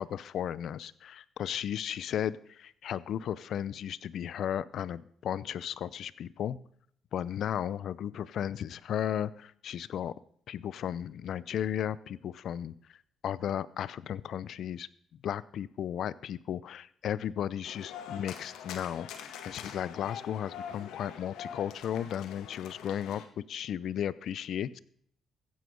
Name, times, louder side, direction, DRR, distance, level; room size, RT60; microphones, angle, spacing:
voice 1, 0.0-6.6 7.1-10.1 10.5-13.0 13.2-14.9 15.2-24.8, left 10 dB, 70° left, 19 dB, 0.6 m, -35 dB
sound 1, 17.6-23.3, left 8 dB, 90° left, 1.6 m, -44 dB
15.0 x 9.5 x 5.3 m, 0.65 s
cardioid pair, 90°, 0 cm